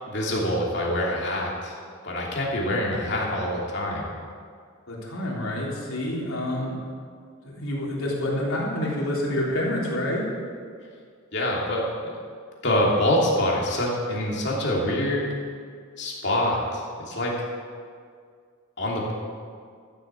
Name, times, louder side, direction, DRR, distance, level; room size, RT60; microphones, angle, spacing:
voice 1, 0.1-1.7 2.0-4.1 11.3-12.1 12.6-15.3 16.0-17.4 18.8-19.1, left 1 dB, 55° left, -3 dB, 2.9 m, -25 dB
voice 2, 4.9-6.8 7.4-10.3, left 1 dB, 80° left, -5 dB, 3.7 m, -28 dB
14.0 x 7.9 x 7.3 m, 2.1 s
head